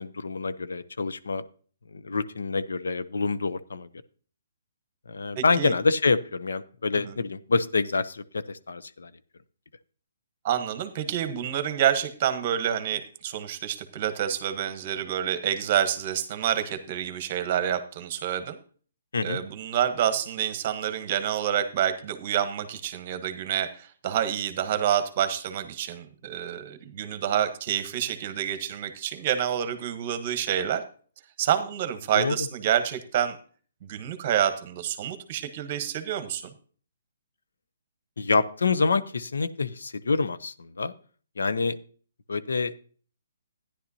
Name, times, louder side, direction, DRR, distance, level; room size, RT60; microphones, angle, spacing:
voice 1, 0.0-1.4 1.9-3.9 5.1-9.1 19.1-19.4 32.1-32.5 38.2-40.9 41.4-41.8 42.3-42.7, left 4 dB, 90° left, 14 dB, 0.6 m, -27 dB
voice 2, 5.3-5.7 7.0-7.1 10.4-18.6 19.2-30.8 31.4-33.4 33.8-36.5, right 10 dB, 35° right, 10 dB, 1.0 m, -28 dB
13.0 x 10.0 x 2.8 m, 0.43 s
hypercardioid pair, 160°, 0 cm